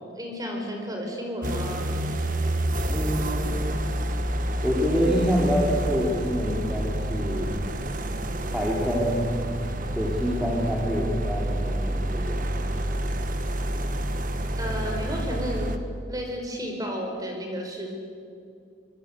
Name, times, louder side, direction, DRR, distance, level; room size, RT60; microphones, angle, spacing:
voice 1, 0.0-1.9 14.6-15.7 16.1-17.9, equal, 20° right, 2 dB, 4.7 m, -32 dB
sound 1, 1.4-15.8, right 1 dB, 45° right, 1.5 m, -28 dB
voice 2, 2.9-3.8 4.6-7.7 8.5-9.4 9.9-12.4, equal, 5° right, -4 dB, 3.1 m, -26 dB
25.0 x 22.5 x 8.3 m, 2.4 s
head